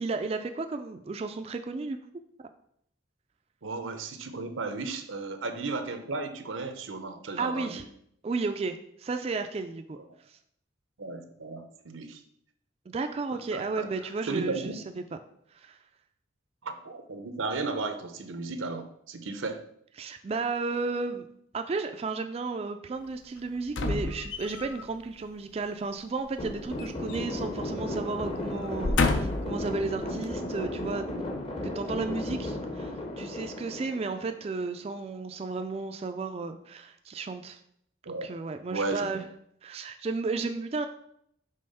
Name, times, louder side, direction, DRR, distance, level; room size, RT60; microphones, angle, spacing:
voice 1, 0.0-2.0 7.4-7.8 8.2-10.0 10.3-10.4 12.9-15.0 15.5-15.8 20.0-21.3 21.5-31.1 31.6-37.6 38.1-39.3 39.6-40.9, right 3 dB, 30° right, 6 dB, 0.3 m, -33 dB
voice 2, 3.6-7.7 11.0-12.2 13.5-13.9 14.3-14.7 16.6-19.6 38.1-38.3 38.7-39.1, right 3 dB, 90° right, 8 dB, 0.8 m, -34 dB
sound 1, 23.7-24.8 26.4-27.5 27.8-28.0 28.6-29.6 30.2-30.3, left 3 dB, 75° left, 0.6 m, -29 dB
sound 2, 26.4-34.7, left 1 dB, 30° left, 0.7 m, -35 dB
5.5 x 3.5 x 5.4 m, 0.70 s
head